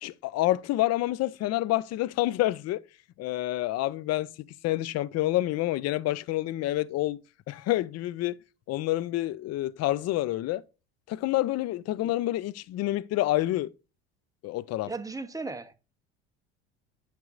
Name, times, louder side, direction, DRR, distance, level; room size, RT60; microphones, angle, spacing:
voice 1, 0.0-2.8 3.2-4.3 4.6-7.2 7.5-8.4 8.7-10.6 11.1-13.7 14.4-14.9, left 16 dB, 50° left, 0.6 m, -28 dB
voice 2, 14.9-15.7, right 3 dB, 10° right, 1.0 m, -36 dB
9.3 x 6.8 x 2.5 m
hypercardioid pair, 80°, 33 cm